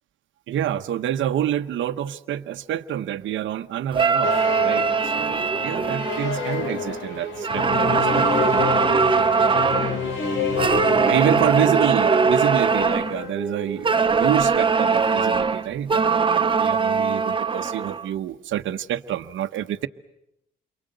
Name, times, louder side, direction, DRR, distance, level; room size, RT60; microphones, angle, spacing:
voice 1, 0.5-4.3 4.6-8.4 11.0-19.9, right 11 dB, 75° right, 1.1 m, -27 dB
sound 1, 3.9-7.0 7.4-10.0 10.6-13.2 13.8-18.1, right 5 dB, 25° right, 1.0 m, -21 dB
sound 2, 4.2-13.3, left 6 dB, 75° left, 3.8 m, -29 dB
sound 3, 5.0-7.8 8.1-11.0 11.3-14.8, right 2 dB, ahead, 2.9 m, -31 dB
29.5 x 23.0 x 8.0 m
cardioid pair, 90°, 20 cm